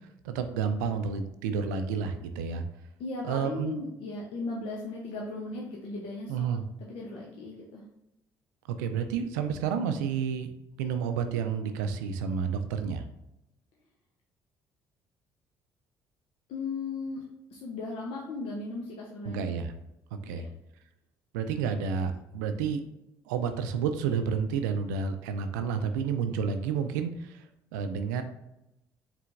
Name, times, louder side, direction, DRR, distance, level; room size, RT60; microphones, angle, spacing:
voice 1, 0.2-2.6 3.2-3.8 6.3-6.6 8.8-10.5 10.8-13.0 19.3-19.7 20.1-20.4 21.3-22.8 23.3-27.3 27.7-28.2, right 6 dB, 85° right, 8 dB, 0.4 m, -30 dB
voice 2, 3.0-6.4 6.8-7.8 16.5-17.2 17.5-19.4 20.2-20.5, left 3 dB, 70° left, -2 dB, 0.8 m, -37 dB
4.5 x 3.3 x 2.5 m, 0.86 s
hypercardioid pair, 55°, 10 cm